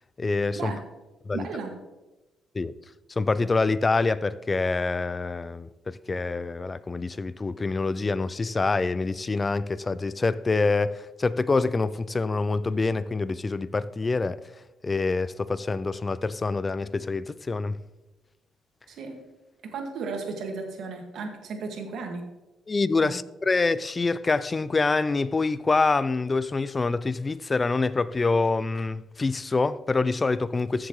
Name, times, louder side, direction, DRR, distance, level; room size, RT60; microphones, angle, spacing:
voice 1, 0.2-0.7 1.3-1.5 2.5-2.7 3.2-14.4 14.8-17.8 22.7-30.9, left 3 dB, 25° left, 0.4 m, -26 dB
voice 2, 1.3-1.7 18.9-19.2 19.6-22.2 23.0-23.2, right 4 dB, 70° right, 1.9 m, -35 dB
14.5 x 7.4 x 3.2 m
cardioid pair, 90°, 0 cm